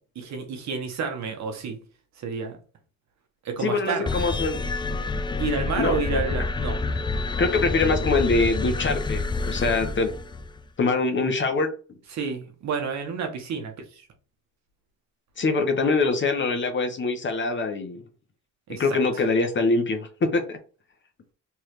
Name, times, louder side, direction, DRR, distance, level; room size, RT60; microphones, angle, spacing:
voice 1, 0.1-1.8 2.2-2.6 3.4-4.1 5.4-6.8 12.1-14.1 18.7-19.0, right 5 dB, 65° right, 1.2 m, -30 dB
voice 2, 3.6-4.6 5.8-6.2 7.4-10.1 10.8-11.7 15.4-18.0 18.7-20.6, left 3 dB, 40° left, 1.0 m, -24 dB
sound 1, 4.1-10.6, left 3 dB, 15° left, 0.3 m, -28 dB
3.5 x 3.1 x 3.0 m
cardioid pair, 90°, 30 cm